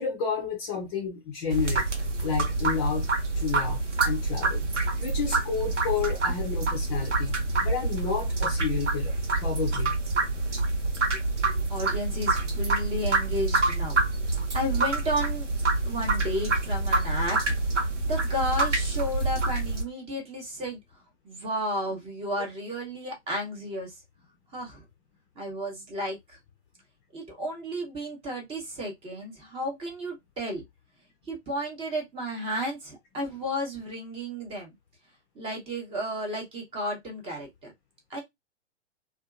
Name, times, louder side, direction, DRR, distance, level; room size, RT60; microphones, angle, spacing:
voice 1, 0.0-1.9 2.2-3.1 3.3-10.0, left 6 dB, 25° left, 0.5 m, -31 dB
sound 1, 1.5-19.8, right 3 dB, 85° right, 0.9 m, -27 dB
voice 2, 11.4-15.5 15.8-17.4 17.8-20.8 21.2-23.9 24.5-24.8 25.4-26.4 27.1-30.6 31.2-34.7 35.3-37.7 38.1-38.2, equal, 15° right, 0.8 m, -33 dB
2.6 x 2.4 x 2.4 m
figure-of-eight pair, 115°, 35 cm